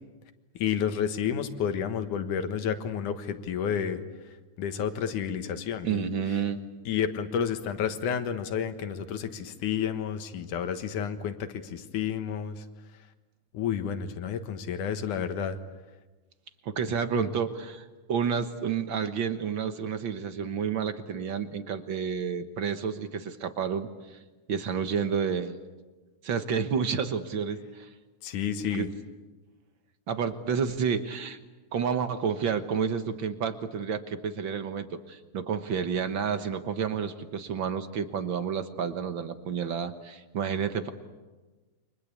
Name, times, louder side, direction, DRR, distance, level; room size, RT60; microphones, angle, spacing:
voice 1, 0.6-4.0 4.6-6.1 6.9-12.6 13.5-15.6 17.1-17.3 28.2-28.9, left 8 dB, 75° left, 9 dB, 2.9 m, -30 dB
voice 2, 5.8-6.6 16.6-24.2 24.5-25.6 26.2-27.9 28.7-28.9 30.1-31.4 31.7-40.9, right 6 dB, 55° right, 9 dB, 1.4 m, -30 dB
29.0 x 24.5 x 8.4 m, 1.2 s
omnidirectional pair, 3.6 m